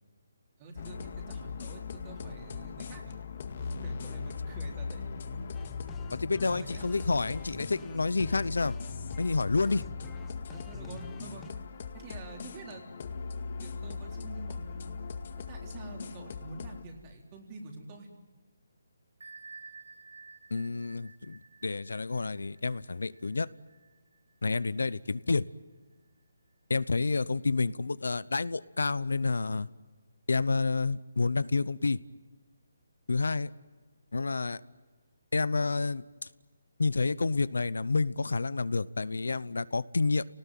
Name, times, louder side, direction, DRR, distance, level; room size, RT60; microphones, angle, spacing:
voice 1, 0.6-3.1 3.5-5.4 6.1-7.0 9.7-9.9 10.5-11.5 11.9-12.8 13.6-14.9 15.5-18.1, right 2 dB, 25° right, 1 dB, 4.0 m, -47 dB
sound 1, 0.8-16.8, left 5 dB, 45° left, 1.9 m, -39 dB
sound 2, 5.5-11.5, left 8 dB, 10° left, 0.8 m, -50 dB
voice 2, 6.1-8.8 9.2-9.9 20.5-23.5 24.4-25.4 26.7-29.7 30.3-32.0 33.1-33.5 34.1-34.6 35.3-36.0 36.8-40.3, left 3 dB, 85° left, 18 dB, 0.8 m, -29 dB
Bell, 19.2-24.6, right 4 dB, 75° right, 2.7 m, -52 dB
30.0 x 19.0 x 9.2 m, 1.4 s
hypercardioid pair, 165°, 0 cm